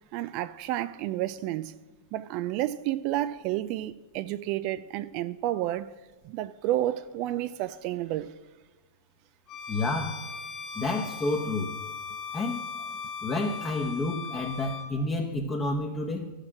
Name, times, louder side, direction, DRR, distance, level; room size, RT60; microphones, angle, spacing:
voice 1, 0.1-1.8 2.1-5.9 6.2-8.3, right 14 dB, 50° right, 0.3 m, -30 dB
Bowed string instrument, 9.5-14.9, left 5 dB, 35° left, 1.5 m, -38 dB
voice 2, 9.7-10.2 10.7-11.7 12.3-12.6 13.2-16.3, left 2 dB, 20° left, 1.0 m, -29 dB
13.5 x 6.5 x 6.1 m
hypercardioid pair, 110°, 0 cm